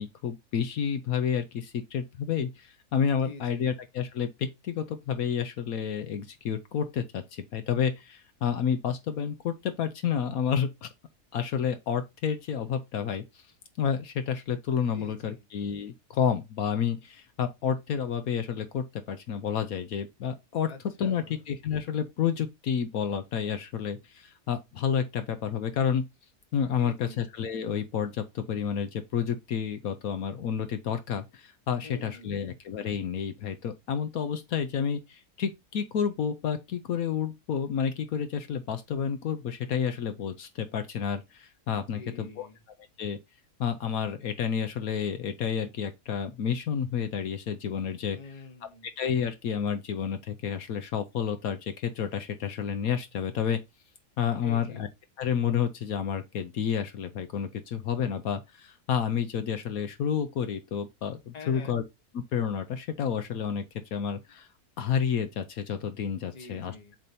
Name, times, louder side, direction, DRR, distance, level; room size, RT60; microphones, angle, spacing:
voice 1, 0.0-10.9 11.3-13.4 13.8-20.7 21.0-26.0 26.5-42.5 43.0-43.2 43.6-48.2 49.0-53.6 54.2-54.9 55.2-61.8 62.1-63.6 63.9-64.5 64.8-66.7, left 7 dB, 70° left, 1.2 m, -30 dB
voice 2, 3.2-3.8 14.9-15.4 20.7-21.4 26.8-27.2 31.8-32.5 41.9-42.6 48.1-48.9 54.4-54.9 61.3-61.8 66.3-67.0, left 4 dB, 30° left, 1.1 m, -46 dB
7.4 x 2.9 x 5.3 m
omnidirectional pair, 1.6 m